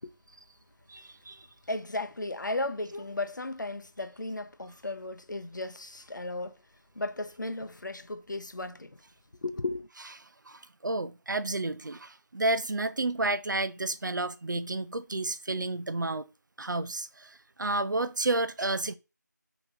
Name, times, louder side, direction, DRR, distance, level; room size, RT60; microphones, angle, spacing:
voice 1, 0.9-1.4 10.5-16.3 16.6-19.0, right 2 dB, 75° right, 0.5 m, -31 dB
voice 2, 1.7-6.6 7.0-9.0 9.4-9.9, left 2 dB, 75° left, 0.6 m, -35 dB
5.3 x 2.9 x 2.5 m
figure-of-eight pair, 175°, 10 cm